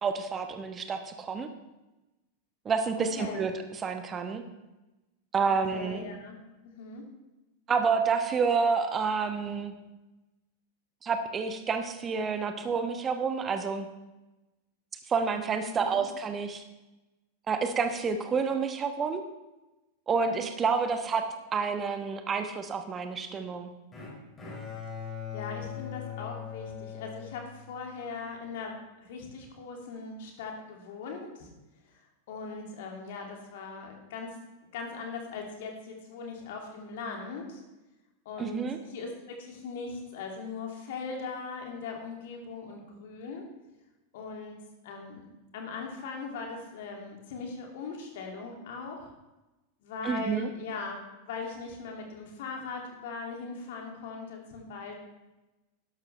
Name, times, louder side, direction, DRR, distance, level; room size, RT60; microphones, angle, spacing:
voice 1, 0.0-1.5 2.6-4.4 5.3-6.0 7.7-9.7 11.0-13.9 15.1-16.6 17.5-19.3 20.1-21.2 21.5-23.7 38.4-38.8 50.0-50.5, right 5 dB, 20° right, 7 dB, 1.1 m, -29 dB
voice 2, 3.1-3.5 5.7-6.4 6.6-7.0 15.6-16.1 25.3-28.7 29.0-31.5 31.9-32.0 32.3-34.3 34.7-37.6 38.2-38.6 38.9-43.4 44.1-44.6 44.8-45.2 45.5-49.1 49.8-51.0 51.3-54.9, left 4 dB, 55° left, 1 dB, 2.5 m, -39 dB
Bowed string instrument, 23.9-28.1, left 8 dB, 20° left, 3.4 m, -40 dB
12.0 x 11.5 x 3.3 m, 1.0 s
figure-of-eight pair, 90°, 0 cm